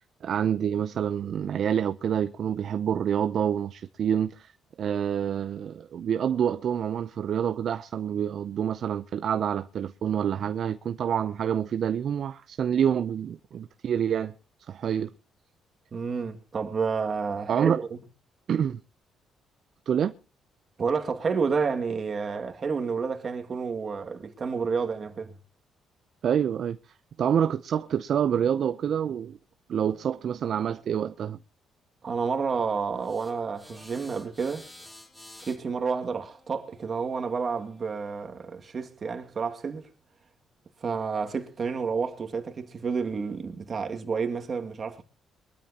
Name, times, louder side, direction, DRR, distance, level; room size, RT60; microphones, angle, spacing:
voice 1, 0.2-4.5 4.8-14.3 14.7-15.1 17.5-17.8 18.5-18.8 19.9-20.1 26.2-26.8 27.2-29.4 29.7-31.4, right 8 dB, 60° right, 0.6 m, -27 dB
voice 2, 15.9-18.0 20.8-25.3 32.0-34.7 35.5-39.9 40.8-45.0, right 5 dB, 45° right, 2.2 m, -30 dB
sound 1, 32.9-38.1, left 1 dB, 20° left, 6.9 m, -51 dB
23.0 x 13.0 x 2.9 m
cardioid pair, 90°, 0 cm